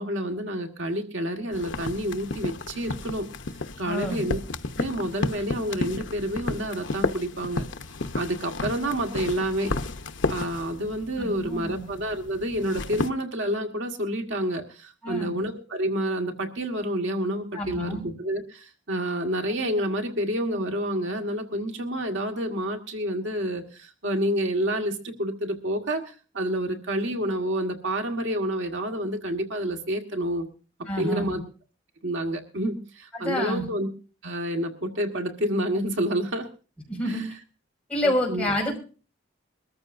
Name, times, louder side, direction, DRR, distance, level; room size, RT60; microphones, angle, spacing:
voice 1, 0.0-3.3 3.8-4.4 4.8-7.6 8.1-9.7 10.3-30.5 31.0-31.4 32.0-33.9 34.2-36.5 37.1-37.2 38.3-38.5, right 1 dB, 75° right, 4 dB, 1.7 m, -29 dB
sound 1, 1.5-13.1, left 3 dB, 75° left, 0.9 m, -33 dB
voice 2, 3.9-4.2 11.2-11.8 15.0-15.4 17.5-18.0 30.9-31.4 33.2-33.7 36.9-37.2 37.9-38.8, left 1 dB, 5° left, -2 dB, 5.5 m, -28 dB
22.5 x 14.0 x 2.6 m, 0.36 s
head